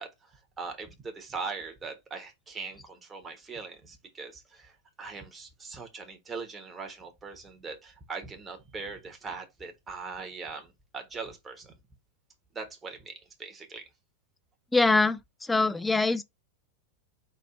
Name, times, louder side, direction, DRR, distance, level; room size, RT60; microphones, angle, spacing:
voice 1, 0.0-11.7 12.5-13.8, right 4 dB, 15° right, 1.2 m, -41 dB
voice 2, 14.7-16.2, left 3 dB, 10° left, 0.4 m, -24 dB
4.5 x 3.0 x 3.7 m
figure-of-eight pair, 90°, 0 cm